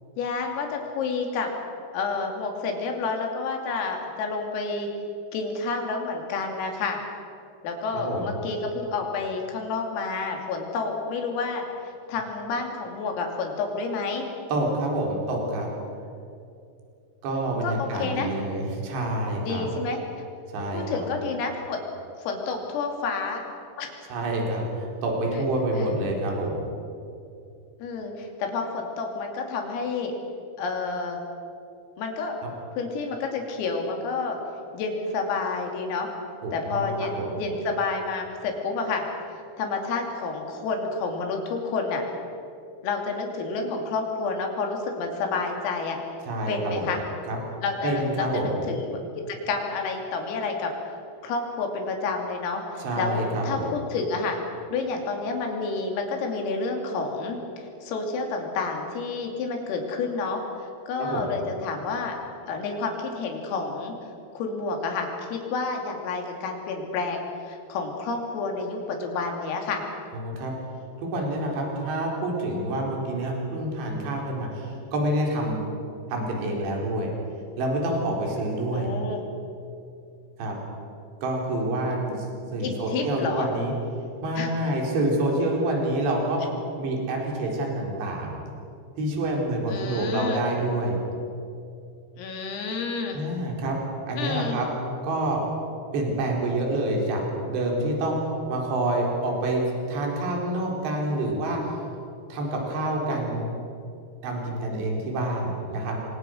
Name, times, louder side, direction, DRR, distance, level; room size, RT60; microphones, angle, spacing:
voice 1, 0.2-1.5 1.9-4.9 5.3-7.0 7.6-11.6 12.1-14.3 17.6-18.3 19.4-20.0 20.7-21.8 22.2-23.4 23.8-23.9 27.8-30.1 30.6-31.2 32.0-32.4 32.8-34.4 34.7-36.1 36.5-39.0 39.6-42.0 42.8-46.0 46.5-47.0 47.6-50.7 51.2-54.4 54.7-60.4 60.9-62.2 62.5-63.9 64.3-69.8 78.7-79.3 82.6-83.5 84.4-84.5 89.7-90.4 92.2-93.2 94.2-94.6, left 4 dB, 80° left, 2 dB, 5.4 m, -29 dB
voice 2, 7.9-8.3 14.5-15.7 17.2-19.7 20.5-21.1 24.1-26.6 36.4-37.3 46.2-46.9 47.3-47.4 47.8-48.6 52.8-53.7 61.0-61.3 70.1-70.5 71.0-75.6 76.1-77.1 77.6-78.9 80.4-80.6 81.2-82.3 82.5-83.7 84.2-86.4 86.8-88.4 89.0-91.0 93.1-93.8 94.1-94.7 95.0-95.4 95.9-101.7 102.3-103.5 104.2-106.0, right 1 dB, 55° right, 0 dB, 6.0 m, -27 dB
27.5 x 23.5 x 6.5 m, 2.5 s
omnidirectional pair, 6.0 m